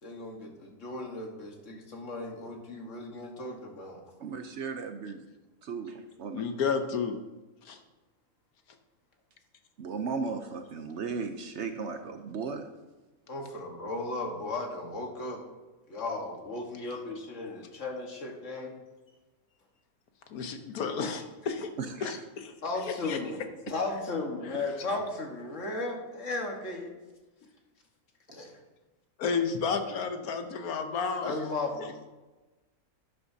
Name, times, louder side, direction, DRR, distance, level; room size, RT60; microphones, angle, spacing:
voice 1, 0.0-4.0 13.3-15.4 15.9-18.7 22.6-23.4 23.7-26.9 28.3-28.5 31.2-31.9, left 2 dB, 55° left, 2 dB, 1.8 m, -35 dB
voice 2, 4.2-5.2 5.6-6.4 9.8-12.7 21.8-22.1, right 5 dB, 60° right, 7 dB, 0.8 m, -36 dB
voice 3, 6.3-7.1 7.6-7.8 20.3-21.7 22.0-22.5 22.8-23.2 29.2-31.3 31.8-31.9, left 5 dB, 80° left, 7 dB, 1.3 m, -31 dB
11.5 x 9.4 x 2.7 m, 1.2 s
omnidirectional pair, 1.5 m